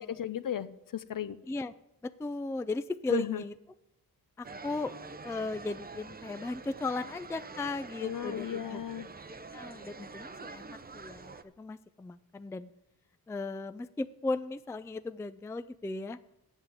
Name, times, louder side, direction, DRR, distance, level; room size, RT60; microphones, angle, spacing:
voice 1, 0.0-1.4 3.1-3.4 8.0-9.1, left 10 dB, 55° left, 14 dB, 0.7 m, -35 dB
voice 2, 2.0-3.5 4.4-4.9 5.2-8.8 9.5-12.7 13.3-16.2, left 3 dB, 10° left, 13 dB, 0.3 m, -36 dB
sound 1, 4.4-11.4, right 4 dB, 25° right, 0.7 m, -46 dB
8.1 x 7.3 x 7.8 m, 0.84 s
cardioid pair, 70°, 39 cm